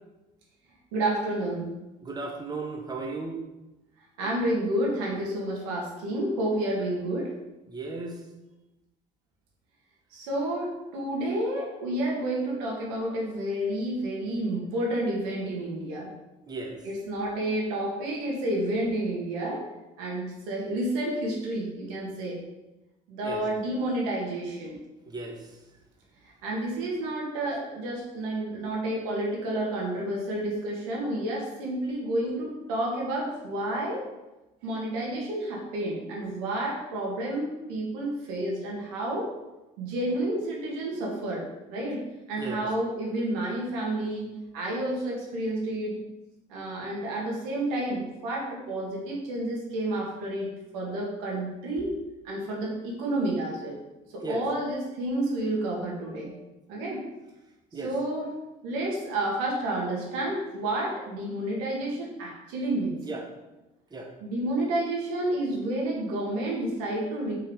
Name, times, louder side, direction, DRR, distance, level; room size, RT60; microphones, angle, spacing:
voice 1, 0.9-1.7 4.2-7.3 10.1-16.1 16.8-19.6 20.0-22.4 23.1-24.8 26.2-34.0 34.6-39.3 39.8-42.0 42.3-46.0 46.5-52.0 52.2-53.8 54.1-56.3 56.7-57.0 57.8-58.3 58.6-63.0 64.2-67.4, right 1 dB, 90° right, -2 dB, 1.9 m, -30 dB
voice 2, 2.0-3.4 7.7-8.2 16.5-16.8 23.2-23.4 25.1-25.5 42.4-42.7 54.2-54.4 57.7-57.9 63.0-63.2 63.9-64.1, right 3 dB, 25° right, 1 dB, 1.2 m, -35 dB
5.2 x 4.5 x 5.4 m, 1.0 s
supercardioid pair, 85°, 18 cm